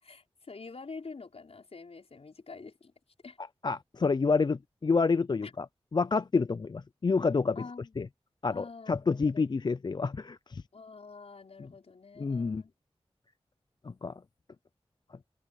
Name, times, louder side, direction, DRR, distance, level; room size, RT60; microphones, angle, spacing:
voice 1, 0.0-2.9 3.2-3.4 5.4-5.5 7.6-8.0 8.4-9.4 10.7-12.7, left 4 dB, 70° left, 5.2 m, -47 dB
voice 2, 3.6-5.7 5.9-7.6 8.0-8.1 8.4-10.6 12.2-12.6 13.8-14.1, left 4 dB, 45° left, 0.4 m, -28 dB
open air
wide cardioid pair, 50°, 11 cm